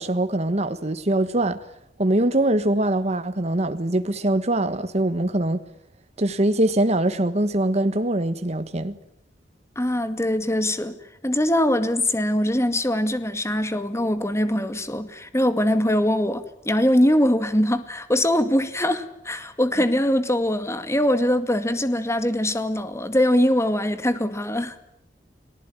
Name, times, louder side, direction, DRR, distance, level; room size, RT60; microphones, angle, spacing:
voice 1, 0.0-1.6 2.0-5.6 6.2-9.0, right 1 dB, 40° right, 1.4 m, -23 dB
voice 2, 9.8-10.9 11.2-24.8, left 1 dB, 15° left, 2.1 m, -22 dB
30.0 x 20.0 x 9.8 m
head